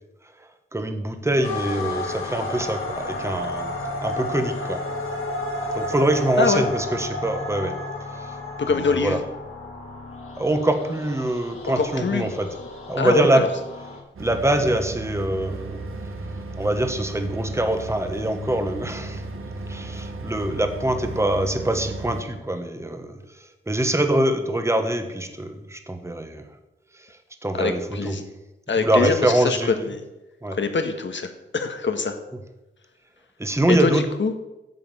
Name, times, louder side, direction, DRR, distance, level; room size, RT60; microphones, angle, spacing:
voice 1, 0.4-3.7 4.0-4.8 5.7-7.7 8.1-8.3 8.6-9.2 10.4-12.6 12.9-13.6 14.2-15.8 16.6-19.2 19.7-26.4 27.0-27.1 27.4-28.2 28.8-29.9 30.4-30.6 33.4-34.1, right 1 dB, 15° right, 6 dB, 1.3 m, -24 dB
sound 1, 1.4-14.0, left 2 dB, 85° left, 2.0 m, -32 dB
voice 2, 8.6-9.2 11.8-12.3 13.0-13.5 27.5-28.3 28.7-30.1 30.5-32.2 33.7-34.3, left 4 dB, 60° left, 7 dB, 1.5 m, -24 dB
sound 2, 14.2-22.2, right 2 dB, 80° right, 1.5 m, -34 dB
9.1 x 7.7 x 7.6 m, 0.99 s
wide cardioid pair, 80°, 21 cm